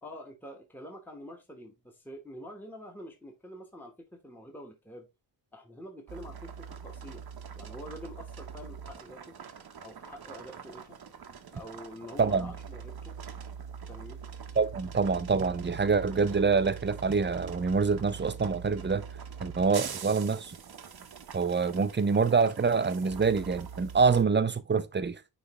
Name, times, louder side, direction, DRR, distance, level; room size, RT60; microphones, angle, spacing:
voice 1, 0.0-5.1 5.5-7.2 7.5-9.4 9.8-11.0 11.5-13.2 13.9-14.2, equal, 5° left, 1.1 m, -46 dB
sound 1, 6.1-24.2, right 7 dB, 50° right, 0.8 m, -43 dB
voice 2, 14.6-19.0 19.4-20.6 21.3-25.2, right 5 dB, 25° right, 0.4 m, -26 dB
9.7 x 3.3 x 3.0 m
wide cardioid pair, 125°, 47 cm